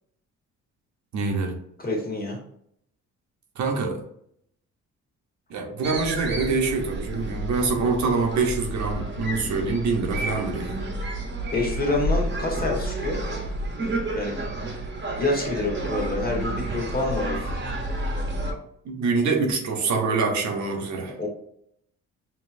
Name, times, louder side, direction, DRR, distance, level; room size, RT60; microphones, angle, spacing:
voice 1, 1.1-1.6 3.6-4.0 5.5-10.8 18.8-21.2, right 4 dB, 70° right, 3 dB, 0.9 m, -25 dB
voice 2, 1.8-2.4 11.5-13.2 14.1-14.4 15.2-17.5 21.2-21.3, left 2 dB, 30° left, -1 dB, 1.6 m, -27 dB
sound 1, 5.8-18.5, right 1 dB, 35° right, 1.0 m, -30 dB
5.2 x 2.9 x 2.6 m, 0.70 s
cardioid pair, 90°, 30 cm